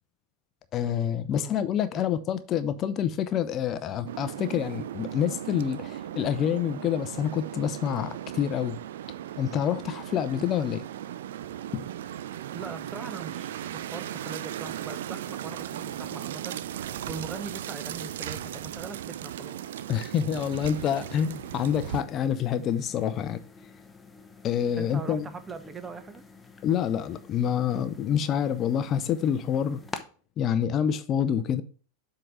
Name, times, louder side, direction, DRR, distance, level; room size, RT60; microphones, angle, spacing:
voice 1, 0.7-8.8 9.4-10.8 11.7-11.9 19.9-23.4 24.4-25.3 26.6-29.8 30.4-31.6, left 9 dB, 35° left, 0.6 m, -27 dB
sound 1, 4.1-22.0, right 11 dB, 65° right, 0.4 m, -37 dB
voice 2, 12.5-19.6 24.8-26.2, right 4 dB, 20° right, 0.8 m, -41 dB
sound 2, 20.4-30.0, left 3 dB, 10° left, 0.9 m, -48 dB
7.7 x 3.8 x 4.7 m
figure-of-eight pair, 85°, 0 cm